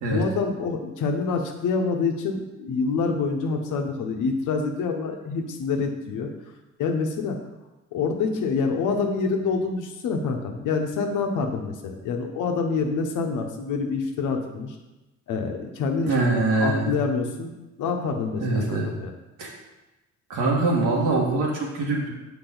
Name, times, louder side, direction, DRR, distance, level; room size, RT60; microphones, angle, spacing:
voice 1, 0.1-6.3 6.8-7.4 7.9-14.8 15.3-16.1 16.6-17.5 17.8-19.1, left 4 dB, 85° left, 3 dB, 1.1 m, -26 dB
voice 2, 16.0-17.0 18.4-18.9 19.4-19.5 20.3-22.1, right 2 dB, 85° right, -3 dB, 2.0 m, -23 dB
7.0 x 5.4 x 4.0 m, 1.0 s
cardioid pair, 90°, 30 cm